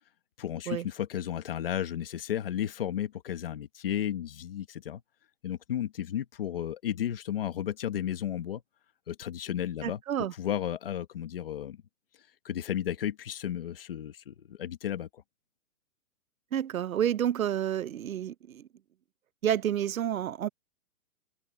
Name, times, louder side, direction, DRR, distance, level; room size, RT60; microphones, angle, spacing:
voice 1, 0.4-5.0 5.4-8.6 9.1-10.0 10.4-11.8 12.4-15.2, left 10 dB, 40° left, 1.6 m, -33 dB
voice 2, 9.8-10.3 16.5-18.7 19.4-20.5, right 10 dB, 70° right, 0.9 m, -29 dB
hypercardioid pair, 180°, 43 cm